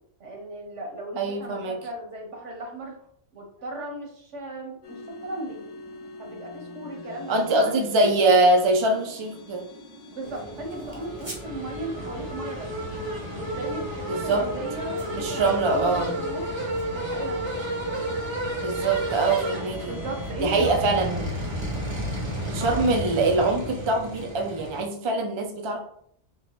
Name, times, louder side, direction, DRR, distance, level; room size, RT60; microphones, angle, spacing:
voice 1, 0.2-2.9 3.3-5.6 6.2-7.8 10.1-12.7 13.3-16.5 16.9-17.4 19.9-20.8 22.6-22.8, right 1 dB, 80° right, 0 dB, 1.4 m, -36 dB
voice 2, 1.2-1.8 7.3-9.7 14.1-14.4 15.1-16.2 18.6-19.9 20.4-21.3 22.4-25.8, right 2 dB, 45° right, 3 dB, 0.3 m, -23 dB
sound 1, 4.8-20.3, left 2 dB, 65° left, 0.8 m, -44 dB
sound 2, 10.2-24.8, equal, 25° right, 0.8 m, -32 dB
3.7 x 3.1 x 3.0 m, 0.65 s
omnidirectional pair, 1.2 m